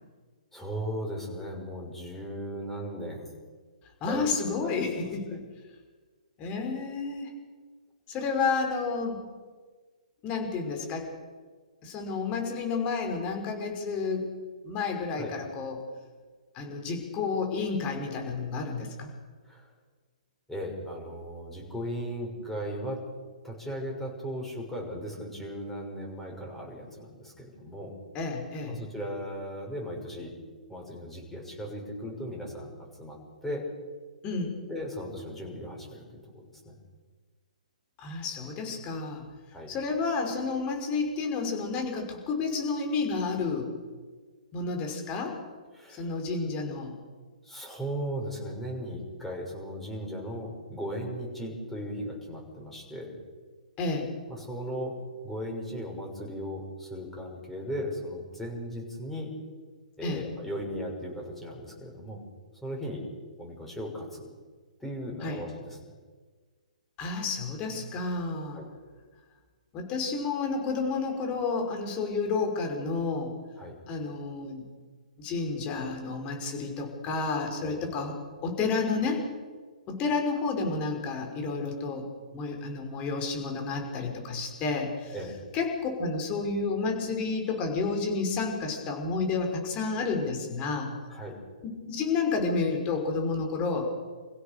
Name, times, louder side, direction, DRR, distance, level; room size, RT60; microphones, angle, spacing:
voice 1, 0.5-3.3 4.1-4.9 5.3-5.4 15.2-15.3 19.5-19.7 20.5-23.0 23.4-28.0 28.7-30.3 30.7-32.7 33.0-33.6 34.7-36.7 39.5-39.7 45.7-46.1 47.4-53.2 54.3-55.0 55.2-59.3 60.0-62.2 62.6-63.1 63.4-64.3 64.8-65.8 68.5-68.7 73.6-73.7 77.6-77.9 85.1-85.4 91.1-91.4, equal, 5° left, -1 dB, 6.5 m, -37 dB
voice 2, 4.0-5.4 6.4-7.3 8.1-9.2 10.2-11.1 11.8-14.3 14.6-15.8 16.5-19.1 28.1-28.8 34.2-34.5 38.0-39.3 39.7-43.7 44.5-45.4 45.9-46.9 53.8-54.1 60.0-60.2 65.2-65.4 67.0-68.6 69.7-73.3 73.9-74.6 75.2-78.1 78.4-79.3 79.9-82.0 82.3-85.1 85.5-90.9 91.9-93.8, left 4 dB, 25° left, 3 dB, 5.7 m, -30 dB
28.0 x 16.0 x 6.9 m, 1.4 s
hypercardioid pair, 145°, 4 cm